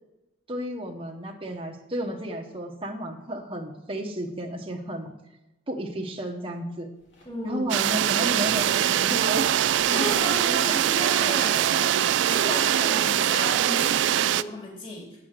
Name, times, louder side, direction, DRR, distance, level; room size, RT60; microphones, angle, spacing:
voice 1, 0.5-5.1 5.7-6.9 7.4-9.5 9.9-10.7 12.5-12.9, right 1 dB, 30° right, 0 dB, 1.1 m, -33 dB
sound 1, 6.9-12.9, left 1 dB, 70° left, 2.7 m, -49 dB
voice 2, 7.2-7.7 9.9-15.2, left 1 dB, 30° left, -4 dB, 2.9 m, -34 dB
sound 2, 7.7-14.4, right 11 dB, 70° right, 0.3 m, -23 dB
8.5 x 6.5 x 7.5 m, 0.99 s
head